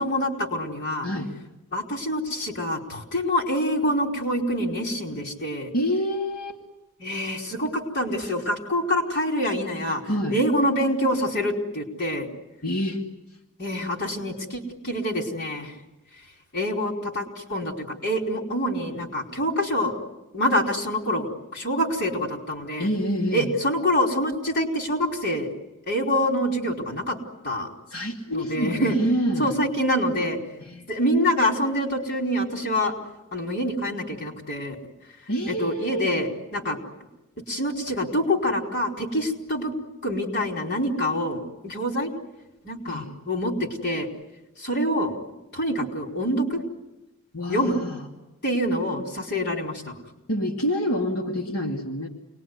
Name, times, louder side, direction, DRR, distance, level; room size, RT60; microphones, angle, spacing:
voice 1, 0.0-1.1 1.7-5.7 7.0-10.0 10.3-12.3 13.6-15.7 16.5-17.7 18.0-19.9 20.3-22.9 23.3-25.5 25.9-27.2 27.4-27.7 28.3-28.9 29.4-30.4 30.9-32.9 33.3-34.7 35.5-36.8 37.5-39.7 40.0-42.1 42.6-44.1 44.6-45.1 45.5-46.6 47.5-47.8 48.4-50.0, equal, 50° left, 1 dB, 4.7 m, -26 dB
voice 2, 1.0-1.3 5.7-6.6 10.1-10.4 12.6-13.0 22.8-23.5 27.9-29.5 30.6-30.9 35.3-36.1 42.9-43.1 47.3-48.0 50.3-52.1, equal, 80° left, 0 dB, 2.7 m, -27 dB
29.0 x 21.0 x 9.7 m, 1.0 s
head